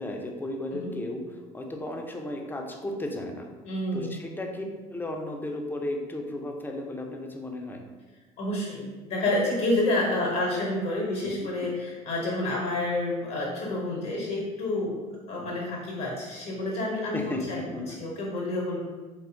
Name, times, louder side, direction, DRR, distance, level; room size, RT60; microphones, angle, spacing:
voice 1, 0.0-3.5 3.9-7.8 11.2-11.3 15.4-15.5 17.1-18.0, left 1 dB, 10° left, 2 dB, 0.3 m, -34 dB
voice 2, 3.7-4.2 8.4-15.0 15.3-18.8, left 2 dB, 60° left, -3 dB, 0.6 m, -29 dB
2.6 x 2.2 x 2.5 m, 1.3 s
hypercardioid pair, 65°, 19 cm